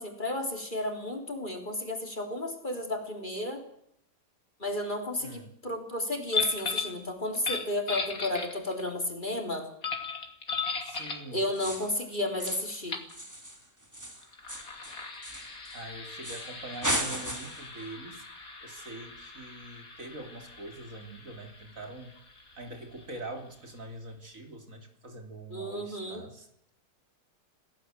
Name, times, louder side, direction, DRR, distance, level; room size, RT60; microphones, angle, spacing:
voice 1, 0.0-3.6 4.6-9.7 11.3-13.0 25.5-26.2, left 1 dB, 30° left, 3 dB, 4.0 m, -33 dB
sound 1, 6.3-7.0 7.4-8.9 9.8-11.3 12.5-12.6 12.9-13.1 14.2-23.5, left 5 dB, 55° left, 3.4 m, -38 dB
voice 2, 10.8-11.4 15.7-18.2 18.6-22.2 22.6-26.5, right 2 dB, 50° right, 4 dB, 3.6 m, -44 dB
sound 2, 11.5-12.0 12.4-12.8 13.1-15.8 16.2-16.5 16.8-17.7, equal, 10° right, 3.3 m, -35 dB
27.5 x 18.0 x 7.8 m, 0.74 s
omnidirectional pair, 1.7 m